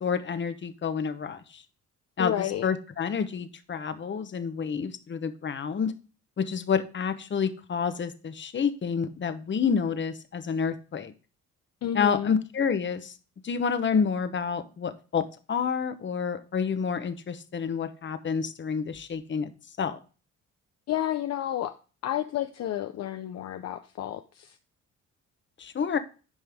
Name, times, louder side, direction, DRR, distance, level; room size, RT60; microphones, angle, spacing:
voice 1, 0.0-1.6 2.2-5.9 6.4-11.1 11.9-13.1 13.4-19.5 19.8-20.0 25.6-26.0, left 6 dB, 40° left, 11 dB, 1.0 m, -29 dB
voice 2, 2.2-2.7 11.8-12.3 20.9-21.7 22.0-24.6, left 11 dB, 55° left, 8 dB, 0.6 m, -31 dB
9.8 x 5.2 x 3.5 m, 0.35 s
cardioid pair, 90°, 30 cm